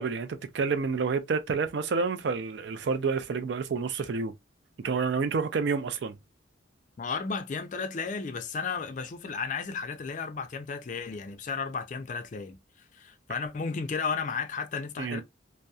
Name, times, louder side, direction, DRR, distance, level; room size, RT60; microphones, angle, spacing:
voice 1, 0.0-4.3 4.8-6.2 15.0-15.2, right 5 dB, 65° right, 0.4 m, -29 dB
voice 2, 7.0-15.2, left 5 dB, 40° left, 0.4 m, -34 dB
2.7 x 2.0 x 2.3 m
head